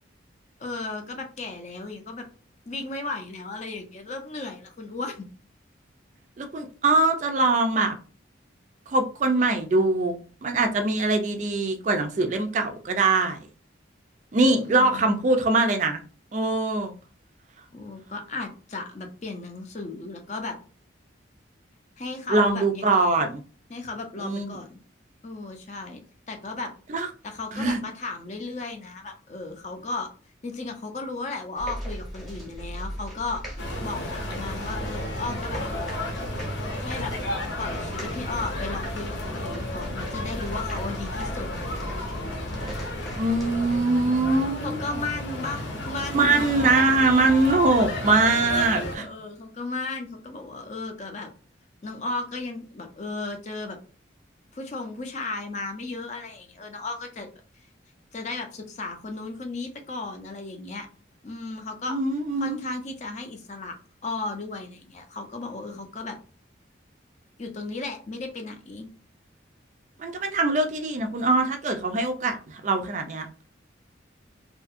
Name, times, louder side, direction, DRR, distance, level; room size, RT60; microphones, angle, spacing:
voice 1, 0.6-2.2 2.7-5.3 14.4-15.1 17.7-20.6 22.0-23.2 23.7-24.8 25.2-26.7 27.2-30.1 30.4-33.4 33.8-35.6 36.8-37.1 37.6-41.5 44.6-46.5 48.9-51.3 51.8-53.8 54.5-57.3 58.1-60.9 61.2-62.0 62.4-63.7 64.0-66.2 67.4-68.9, left 3 dB, 40° left, 0.5 m, -35 dB
voice 2, 6.4-7.9 8.9-13.4 14.3-16.0 16.3-16.9 22.3-23.4 24.2-24.5 26.9-27.1 27.5-27.8 43.1-44.8 46.1-49.1 61.9-62.6 70.0-73.5, right 2 dB, 40° right, 0.3 m, -23 dB
sound 1, 31.6-43.8, equal, ahead, 0.8 m, -38 dB
sound 2, 33.6-49.0, left 1 dB, 70° left, 0.8 m, -33 dB
2.7 x 2.5 x 2.4 m
head